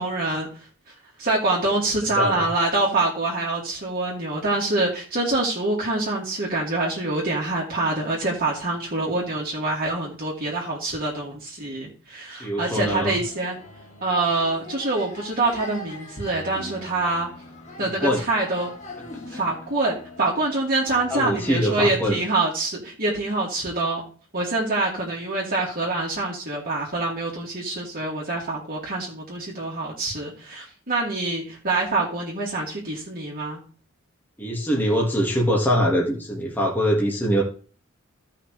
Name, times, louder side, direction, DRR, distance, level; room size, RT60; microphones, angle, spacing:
voice 1, 0.0-13.6 14.0-17.3 17.8-18.7 19.3-24.0 24.3-33.6, right 2 dB, 40° right, -3 dB, 2.6 m, -25 dB
voice 2, 12.4-13.2 18.0-18.2 19.3-19.4 21.1-22.2 34.4-37.4, equal, 10° left, -3 dB, 1.9 m, -23 dB
sound 1, 13.1-21.6, left 1 dB, 30° left, 2.4 m, -42 dB
16.0 x 5.9 x 3.4 m, 0.41 s
head